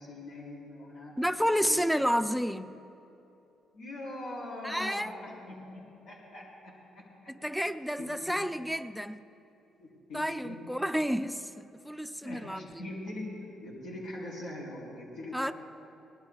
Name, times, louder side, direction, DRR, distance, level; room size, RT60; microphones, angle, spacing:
voice 1, 0.0-1.9 3.7-7.3 8.0-8.4 9.8-10.9 12.2-13.3 13.6-15.5, left 1 dB, 85° left, 4.1 m, -42 dB
voice 2, 1.2-2.8 4.6-5.2 7.3-9.2 10.1-12.9 15.3-15.5, equal, ahead, 0.5 m, -30 dB
23.0 x 18.5 x 2.4 m
cardioid pair, 90°, 0 cm